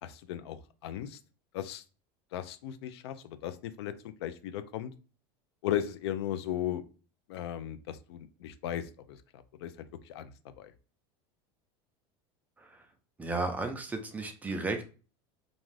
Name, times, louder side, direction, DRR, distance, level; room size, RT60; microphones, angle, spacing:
voice 1, 0.0-1.2 1.5-1.8 2.3-3.9 4.2-4.9 5.6-6.8 7.3-10.7, left 11 dB, 85° left, 12 dB, 0.4 m, -37 dB
voice 2, 13.2-14.9, right 3 dB, 10° right, 5 dB, 0.4 m, -34 dB
2.5 x 2.4 x 3.2 m, 0.36 s
supercardioid pair, 135°, 13 cm